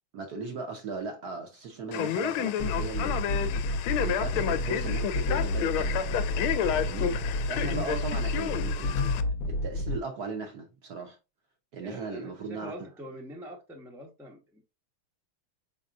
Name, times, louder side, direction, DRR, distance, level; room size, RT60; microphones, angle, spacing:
voice 1, 0.1-6.1 6.7-7.2 7.5-11.2 11.7-12.7, right 4 dB, 65° right, 1.0 m, -38 dB
Male speech man speaking, 1.9-9.2, left 9 dB, 80° left, 1.3 m, -31 dB
sound 1, 2.6-10.0, left 2 dB, 55° left, 1.0 m, -30 dB
voice 2, 11.8-14.6, equal, 5° right, 0.4 m, -44 dB
5.1 x 4.0 x 2.4 m
omnidirectional pair, 2.4 m